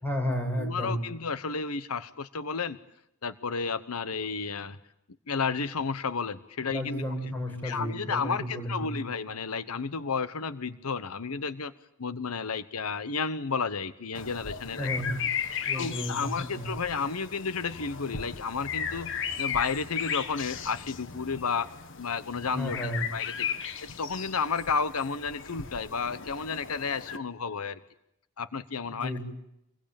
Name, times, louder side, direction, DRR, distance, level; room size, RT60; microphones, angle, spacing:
voice 1, 0.0-1.0 6.7-9.0 14.8-15.2 15.7-16.7 22.5-23.0 28.9-29.2, equal, 10° left, 3 dB, 7.3 m, -32 dB
voice 2, 0.6-2.8 3.2-4.8 5.3-7.0 7.6-11.7 12.0-14.9 15.7-19.1 19.4-21.7 22.0-23.5 24.0-27.8 28.4-29.1, left 5 dB, 90° left, 14 dB, 1.0 m, -32 dB
sound 1, 14.1-27.2, left 7 dB, 60° left, 1.7 m, -36 dB
27.5 x 22.0 x 9.0 m, 0.79 s
head